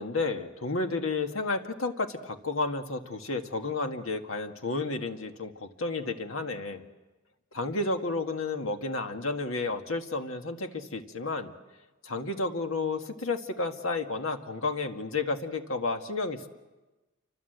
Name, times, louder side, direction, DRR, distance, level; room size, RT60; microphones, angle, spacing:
voice 1, 0.0-6.8 7.5-11.5 12.0-16.5, left 3 dB, 80° left, 6 dB, 1.9 m, -31 dB
28.5 x 25.0 x 8.1 m, 1.1 s
head